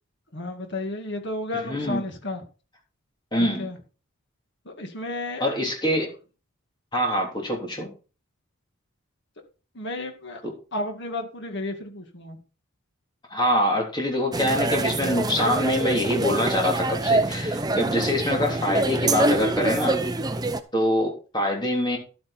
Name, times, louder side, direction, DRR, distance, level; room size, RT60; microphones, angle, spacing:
voice 1, 0.3-2.4 3.4-3.8 4.7-5.5 9.7-10.4 10.7-12.4, left 2 dB, 55° left, 5 dB, 2.1 m, -32 dB
voice 2, 1.6-2.0 3.3-3.7 5.4-6.1 6.9-7.9 10.4-10.5 13.3-20.0 20.7-22.0, left 1 dB, 20° left, 0 dB, 3.4 m, -25 dB
sound 1, 14.3-20.6, right 2 dB, 20° right, 0.7 m, -25 dB
11.5 x 8.4 x 4.4 m, 0.35 s
head